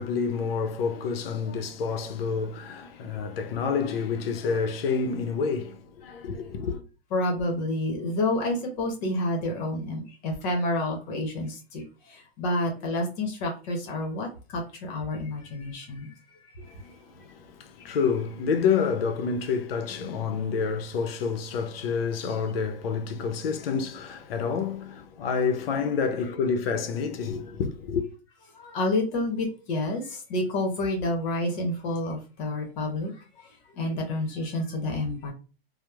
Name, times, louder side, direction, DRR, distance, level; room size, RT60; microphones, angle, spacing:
voice 1, 0.0-6.8 16.6-28.0, left 5 dB, 70° left, 0.6 m, -28 dB
voice 2, 7.1-16.1 16.4-16.5 28.5-33.1 33.4-35.3, left 1 dB, 45° left, 0.9 m, -29 dB
2.8 x 2.0 x 2.3 m
hypercardioid pair, 125°, 31 cm